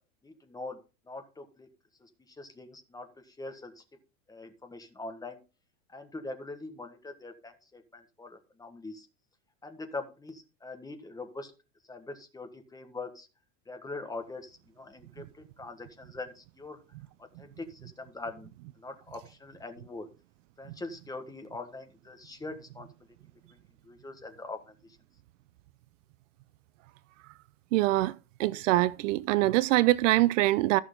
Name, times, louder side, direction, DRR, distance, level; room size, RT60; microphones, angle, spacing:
voice 1, 0.2-0.8 1.1-1.7 2.0-3.8 4.3-5.4 5.9-9.1 9.6-11.5 11.9-13.3 13.7-16.8 17.4-18.5 18.8-20.1 20.6-22.9 23.8-24.7, left 2 dB, 10° left, 1.5 m, -42 dB
voice 2, 27.7-28.1 28.4-30.8, right 17 dB, 70° right, 0.6 m, -24 dB
14.0 x 6.3 x 3.8 m
supercardioid pair, 145°, 39 cm